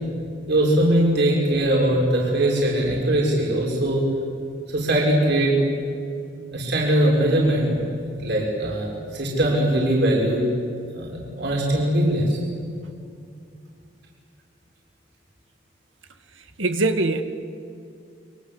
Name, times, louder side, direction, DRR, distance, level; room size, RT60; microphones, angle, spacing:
voice 1, 0.5-4.0 4.7-5.6 6.5-7.7 8.1-8.9 9.1-10.4 10.9-12.4, right 1 dB, 65° right, -3 dB, 6.6 m, -21 dB
voice 2, 16.6-17.2, right 2 dB, 85° right, 7 dB, 2.2 m, -21 dB
30.0 x 24.5 x 8.2 m, 2.4 s
head